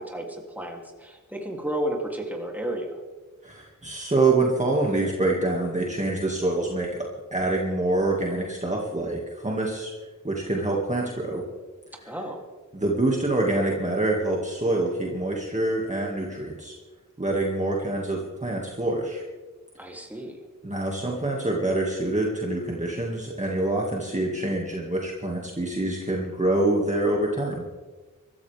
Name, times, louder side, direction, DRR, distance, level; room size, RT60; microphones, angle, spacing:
voice 1, 0.0-3.0 12.1-12.4 19.8-20.4, right 1 dB, 5° right, 0 dB, 2.9 m, -32 dB
voice 2, 3.4-6.9 7.3-9.9 10.2-11.4 12.0-12.1 12.7-16.7 17.2-19.2 20.6-27.7, right 2 dB, 20° right, -2 dB, 2.1 m, -26 dB
24.0 x 14.0 x 3.5 m, 1.3 s
wide cardioid pair, 105°, 32 cm